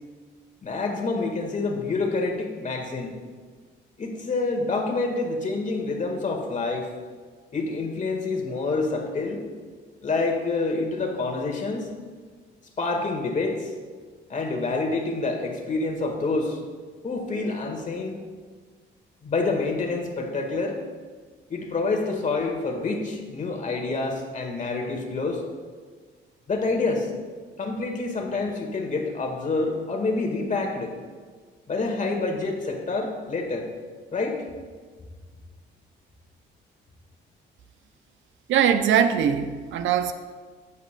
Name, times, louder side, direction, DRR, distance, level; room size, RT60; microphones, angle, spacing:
voice 1, 0.6-3.2 4.0-6.9 7.5-9.4 10.0-11.9 12.8-13.7 14.3-16.6 17.0-18.2 19.2-20.8 21.5-25.4 26.5-27.1 27.6-30.9 31.7-33.7 34.1-34.4, left 3 dB, 40° left, 2 dB, 1.6 m, -27 dB
voice 2, 38.5-40.1, right 8 dB, 75° right, 10 dB, 0.6 m, -21 dB
12.0 x 8.4 x 2.2 m, 1.5 s
cardioid pair, 90°, 20 cm